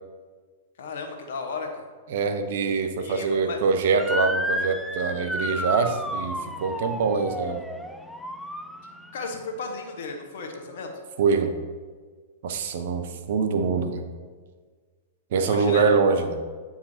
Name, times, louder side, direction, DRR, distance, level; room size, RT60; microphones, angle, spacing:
voice 1, 0.8-1.8 3.0-3.6 9.1-10.9 15.3-15.9, left 4 dB, 60° left, 2 dB, 1.0 m, -34 dB
voice 2, 2.1-7.7 11.2-11.6 12.4-14.0 15.3-16.4, right 5 dB, 60° right, 7 dB, 0.6 m, -24 dB
Motor vehicle (road) / Siren, 4.0-9.2, equal, ahead, 0.4 m, -31 dB
8.3 x 4.8 x 2.7 m, 1.5 s
figure-of-eight pair, 105°, 0 cm